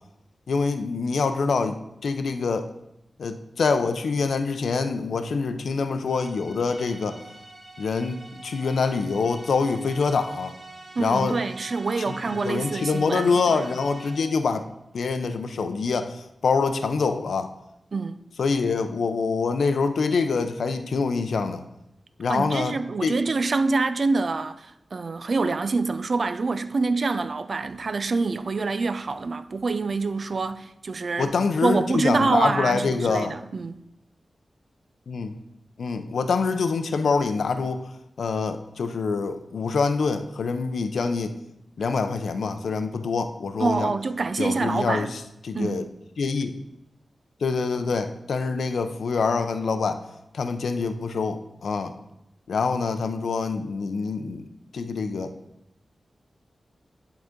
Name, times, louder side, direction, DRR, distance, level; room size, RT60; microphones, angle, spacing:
voice 1, 0.5-2.7 3.2-7.2 7.8-10.5 11.0-11.4 12.3-14.7 14.9-17.5 18.4-21.6 22.2-23.2 31.2-33.4 35.1-35.3 35.8-37.9 38.2-41.4 41.8-43.9 44.4-45.8 46.2-46.6 47.4-50.0 50.3-51.9 52.5-54.4 54.7-55.3, left 4 dB, 85° left, 0.5 m, -25 dB
sound 1, 6.1-14.5, right 2 dB, 35° right, 1.2 m, -44 dB
voice 2, 11.0-13.6 17.9-18.2 22.3-31.3 31.6-33.8 43.6-45.1 45.5-45.9, right 3 dB, 60° right, 0.4 m, -26 dB
10.5 x 3.9 x 3.7 m
cardioid pair, 65°, 0 cm